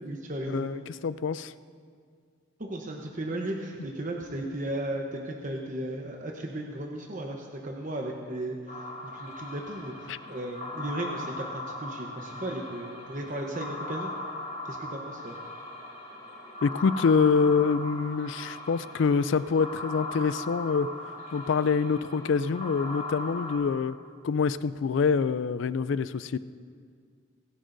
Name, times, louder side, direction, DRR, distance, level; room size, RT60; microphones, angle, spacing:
voice 1, 0.0-0.7 2.6-14.1 14.7-15.4, right 1 dB, 40° right, 0 dB, 0.9 m, -35 dB
voice 2, 0.5-1.5 10.1-10.2 16.6-20.9 21.3-24.0 24.2-26.4, left 5 dB, 65° left, 16 dB, 0.3 m, -25 dB
sound 1, 8.7-23.6, left 2 dB, 40° left, 3.8 m, -39 dB
26.0 x 10.0 x 2.7 m, 2.1 s
head